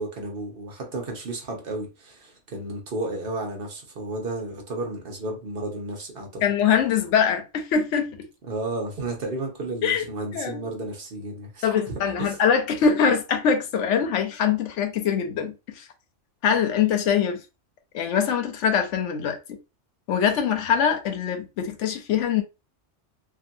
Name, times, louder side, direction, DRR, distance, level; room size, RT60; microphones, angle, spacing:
voice 1, 0.0-6.4 8.5-12.4, right 2 dB, 55° right, 0.9 m, -32 dB
voice 2, 6.4-8.3 9.8-10.0 10.3-10.6 11.6-15.9 16.4-17.4 17.9-19.6 20.1-22.4, left 7 dB, 85° left, 0.9 m, -23 dB
2.8 x 2.6 x 2.5 m
omnidirectional pair, 1.2 m